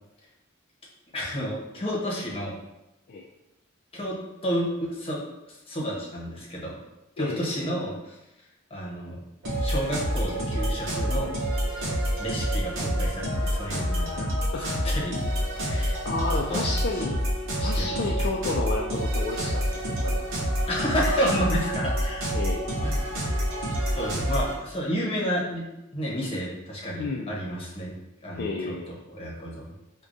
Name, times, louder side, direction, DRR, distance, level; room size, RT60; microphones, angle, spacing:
voice 1, 1.1-2.5 3.9-4.2 4.4-5.2 5.5-6.8 7.2-8.2 8.7-9.2 9.6-11.3 12.2-14.3 14.7-15.2 15.6-16.0 16.5-17.0 17.6-18.0 20.7-22.3 22.8-23.1 23.9-25.6 25.9-27.9 28.2-28.8 29.1-29.7, equal, 30° left, -4 dB, 0.9 m, -30 dB
voice 2, 7.2-7.7 11.8-12.0 14.5-14.7 16.0-17.2 17.6-20.3 22.3-22.6 27.0-27.3 28.4-28.9, left 3 dB, 50° left, -1 dB, 0.3 m, -31 dB
sound 1, 9.4-24.6, equal, 65° right, 0.8 m, -27 dB
4.7 x 2.2 x 2.6 m, 0.95 s
head